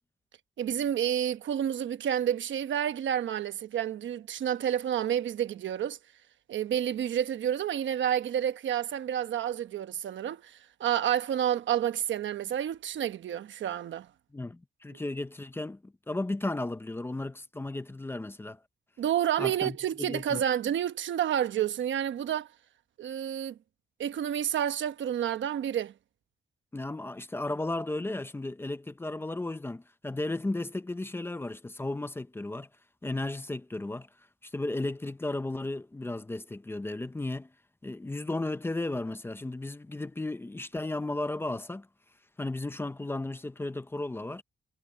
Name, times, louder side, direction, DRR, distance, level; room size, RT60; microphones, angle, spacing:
voice 1, 0.6-6.0 6.5-14.1 19.0-22.5 23.0-23.6 24.0-25.9, right 10 dB, 75° right, 1.1 m, -29 dB
voice 2, 14.3-18.6 19.4-20.4 26.7-32.7 33.0-34.1 34.4-37.5 37.8-41.9 42.4-44.4, left 2 dB, 10° left, 0.6 m, -34 dB
wide cardioid pair, 170°, 19 cm